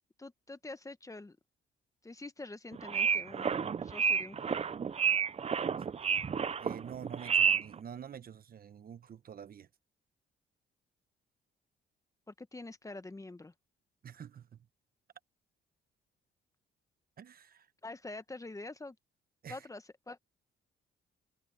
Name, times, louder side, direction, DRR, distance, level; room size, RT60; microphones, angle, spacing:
voice 1, 0.2-1.4 2.0-4.6 12.3-13.5 17.8-19.0 19.5-20.2, left 2 dB, 15° left, 1.1 m, -46 dB
sound 1, 2.7-7.8, right 6 dB, 30° right, 0.6 m, -30 dB
voice 2, 6.6-9.7 14.0-14.6 17.2-17.7 19.4-19.7, right 8 dB, 50° right, 1.0 m, -47 dB
cardioid pair, 90°, 20 cm